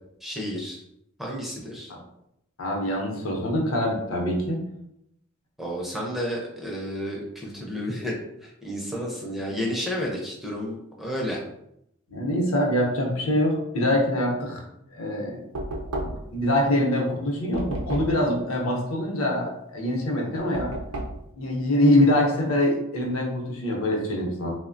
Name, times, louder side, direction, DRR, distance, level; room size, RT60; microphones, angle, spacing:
voice 1, 0.2-0.8 1.2-1.9 5.6-8.2 8.4-11.4, equal, ahead, -3 dB, 0.4 m, -31 dB
voice 2, 2.6-4.6 12.1-14.6 14.9-15.4 16.0-20.7 21.4-24.5, left 1 dB, 70° left, -1 dB, 0.7 m, -24 dB
Knock, 15.5-16.4 17.5-18.3 20.5-21.3, right 1 dB, 90° right, 0.5 m, -32 dB
3.0 x 2.1 x 2.4 m, 0.79 s
head